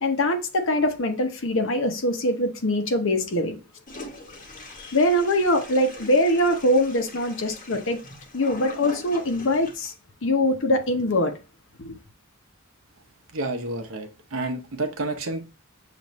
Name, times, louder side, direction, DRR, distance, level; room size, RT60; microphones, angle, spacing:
voice 1, 0.0-3.6 4.8-8.0 8.3-9.9 10.2-11.3 11.8-12.0, left 1 dB, 65° left, 0.8 m, -23 dB
Toilet flush, 3.9-9.9, left 2 dB, 40° left, 1.0 m, -42 dB
voice 2, 13.3-15.4, right 2 dB, 70° right, 0.8 m, -30 dB
6.8 x 2.5 x 3.1 m
head